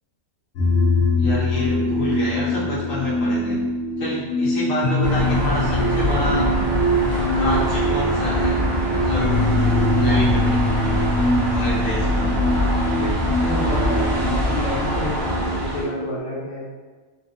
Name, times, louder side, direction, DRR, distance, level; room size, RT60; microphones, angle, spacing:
sound 1, 0.5-16.1, left 1 dB, 90° left, 1.2 m, -23 dB
voice 1, 1.1-3.7 4.0-6.5 7.2-8.6 9.0-9.4 9.9-10.6 11.5-12.4, left 1 dB, 70° left, -7 dB, 1.2 m, -28 dB
sound 2, 5.0-15.8, left 1 dB, 45° right, 0.7 m, -24 dB
voice 2, 12.9-16.7, left 1 dB, 15° left, -9 dB, 0.6 m, -29 dB
3.3 x 2.0 x 2.5 m, 1.3 s
omnidirectional pair, 1.5 m